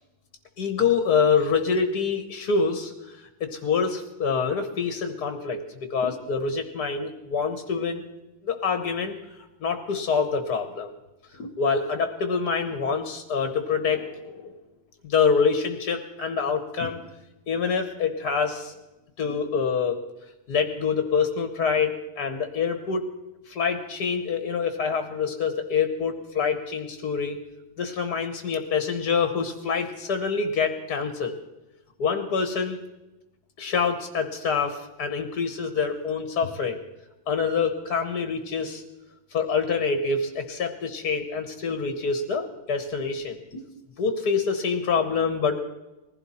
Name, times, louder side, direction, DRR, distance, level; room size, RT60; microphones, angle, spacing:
voice 1, 0.6-8.0 8.4-10.9 11.3-14.6 15.0-17.0 17.5-18.7 19.2-20.0 20.5-23.0 23.5-27.4 27.8-31.3 32.0-32.8 33.6-36.8 37.3-38.8 39.3-43.6 44.0-45.6, left 5 dB, 55° left, 7 dB, 1.7 m, -26 dB
20.5 x 15.5 x 4.3 m, 1.0 s
omnidirectional pair, 2.2 m